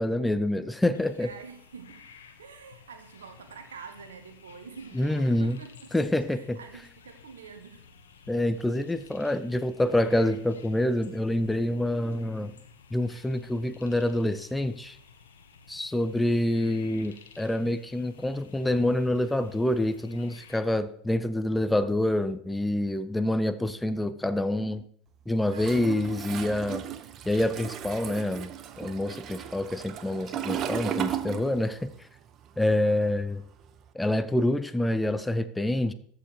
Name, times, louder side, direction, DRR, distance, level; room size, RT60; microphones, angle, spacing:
voice 1, 0.0-1.3 4.9-5.6 5.9-6.6 8.3-12.5 12.9-15.0 15.7-24.8 25.3-26.8 27.2-32.1 32.6-33.4 33.9-35.9, left 1 dB, 10° left, 0.6 m, -27 dB
sound 1, 0.9-20.6, left 6 dB, 80° left, 1.2 m, -54 dB
voice 2, 1.2-2.1 2.4-5.9 6.2-7.9 25.5-26.1 32.8-33.1, right 5 dB, 85° right, 1.2 m, -46 dB
Toilet flush, 25.5-32.0 32.2-33.8, right 10 dB, 45° right, 0.8 m, -36 dB
14.0 x 4.9 x 4.5 m
hypercardioid pair, 80°, 0 cm